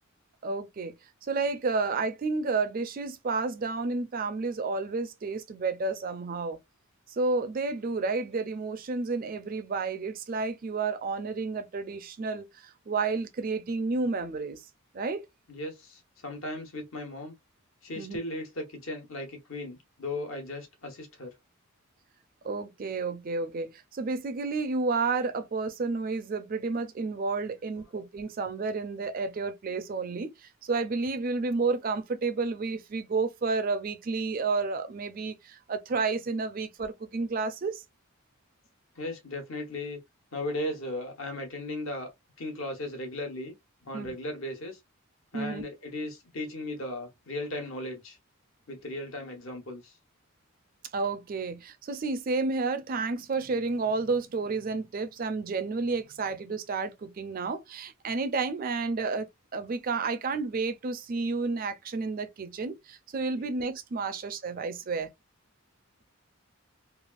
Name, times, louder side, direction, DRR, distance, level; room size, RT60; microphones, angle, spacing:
voice 1, 0.4-0.9 1.2-6.6 7.1-14.6 14.9-15.2 18.0-18.2 22.4-30.3 30.6-37.8 43.9-44.1 45.3-45.6 50.9-65.1, right 4 dB, 40° right, 0.4 m, -31 dB
voice 2, 15.5-17.3 17.8-21.3 39.0-40.0 40.3-42.1 42.4-43.5 43.8-44.8 45.3-48.2 48.7-49.9, left 1 dB, 65° left, 1.0 m, -36 dB
3.3 x 2.3 x 2.3 m
head